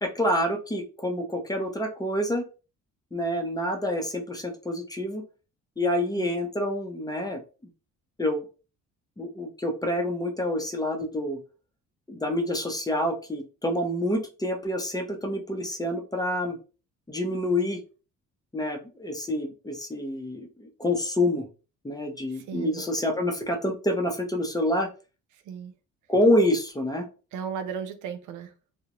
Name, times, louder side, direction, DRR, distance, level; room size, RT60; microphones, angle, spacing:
voice 1, 0.0-2.4 3.1-5.2 5.8-7.4 8.2-8.4 9.2-11.4 12.1-16.6 17.1-17.8 18.5-21.5 21.8-24.9 26.1-27.1, left 1 dB, 15° left, 0.6 m, -27 dB
voice 2, 22.5-22.8 25.5-25.7 27.3-28.5, right 7 dB, 85° right, 0.5 m, -35 dB
2.4 x 2.0 x 2.9 m
cardioid pair, 90°, 30 cm